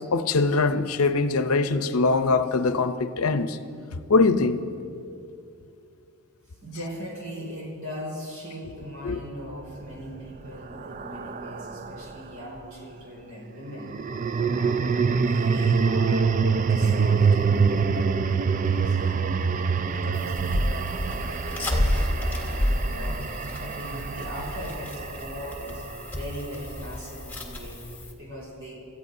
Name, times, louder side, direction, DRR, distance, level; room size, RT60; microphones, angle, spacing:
voice 1, 0.1-3.6 4.1-4.7 9.0-9.2, left 3 dB, 80° left, 0.6 m, -22 dB
voice 2, 6.6-13.9 14.5-19.3 19.7-23.2 23.5-27.8 28.2-28.8, equal, 70° right, 4.3 m, -40 dB
sound 1, 9.7-12.2 13.8-26.1, right 5 dB, 35° right, 0.3 m, -25 dB
sound 2, 20.1-28.1, left 1 dB, 10° left, 1.4 m, -30 dB
26.5 x 14.0 x 2.7 m
head